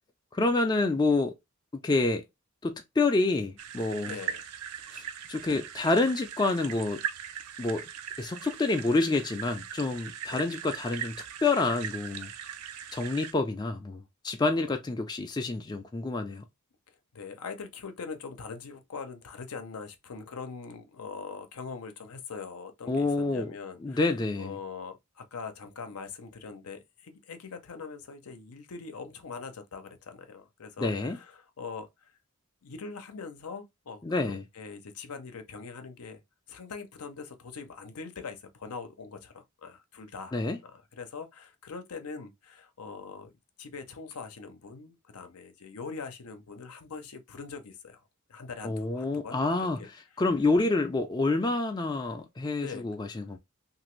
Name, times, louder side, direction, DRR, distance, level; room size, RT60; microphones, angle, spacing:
voice 1, 0.3-1.3 1.8-2.2 2.6-4.2 4.9-5.0 5.3-7.0 7.6-7.8 8.2-11.1 11.4-12.3 12.9-16.4 22.9-23.5 23.8-24.6 30.8-31.2 34.0-34.4 40.3-40.6 48.6-49.9 50.2-53.4, left 3 dB, 20° left, 0.3 m, -28 dB
sound 1, 3.6-13.3, right 9 dB, 85° right, 0.5 m, -40 dB
voice 2, 4.0-4.4 10.3-10.5 14.4-14.8 17.1-24.1 24.4-32.1 32.6-36.2 36.5-40.4 40.6-43.3 43.6-48.0 48.3-49.9 52.6-53.2, left 5 dB, 80° left, 0.6 m, -42 dB
2.9 x 2.5 x 3.0 m
head